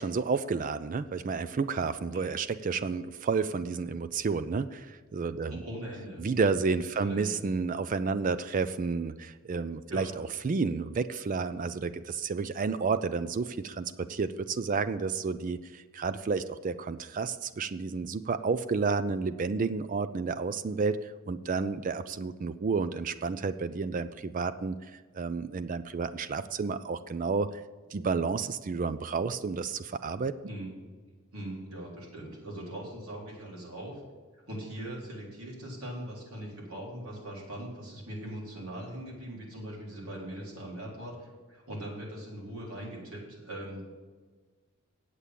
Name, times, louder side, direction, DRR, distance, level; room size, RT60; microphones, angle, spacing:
voice 1, 0.0-5.6 6.2-24.8 25.1-27.5 27.9-30.4, right 4 dB, 35° right, 13 dB, 0.4 m, -31 dB
voice 2, 5.5-6.2 7.0-7.4 9.9-10.1 30.4-30.7 31.3-34.0 34.5-43.8, right 1 dB, 80° right, -3 dB, 3.9 m, -41 dB
8.4 x 8.2 x 7.5 m, 1.4 s
head